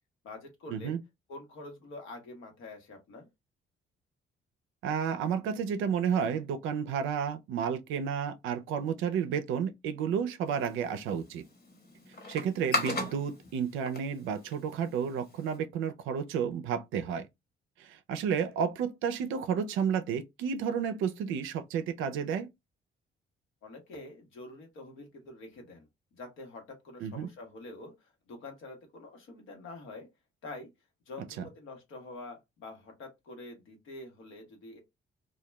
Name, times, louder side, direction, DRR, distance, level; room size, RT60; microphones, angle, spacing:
voice 1, 0.2-1.0 1.3-3.3 23.6-30.1 30.4-30.7 31.1-34.8, left 2 dB, 85° left, 1.0 m, -46 dB
voice 2, 4.8-11.4 12.3-17.3 17.8-22.5 27.0-27.3, right 7 dB, 90° right, 0.4 m, -31 dB
sound 1, 10.5-15.6, left 2 dB, 55° left, 1.1 m, -38 dB
2.2 x 2.2 x 3.0 m
cardioid pair, 90°, 20 cm